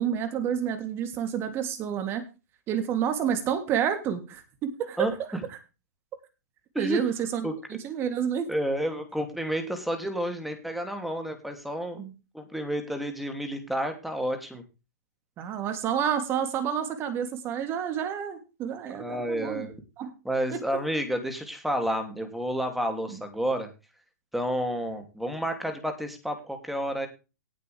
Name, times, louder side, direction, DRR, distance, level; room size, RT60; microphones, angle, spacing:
voice 1, 0.0-2.2 2.7-5.1 6.8-7.5 7.8-8.5 12.0-12.1 15.4-19.7 20.0-20.1 20.5-20.6 23.1-23.2, right 8 dB, 25° right, 8 dB, 3.1 m, -29 dB
voice 2, 5.0-5.4 6.7-7.0 7.4-7.5 8.5-12.0 12.3-14.6 18.9-19.7 20.2-23.7 24.3-27.1, equal, ahead, 6 dB, 2.9 m, -30 dB
18.0 x 8.3 x 3.5 m, 0.29 s
hypercardioid pair, 145°, 9 cm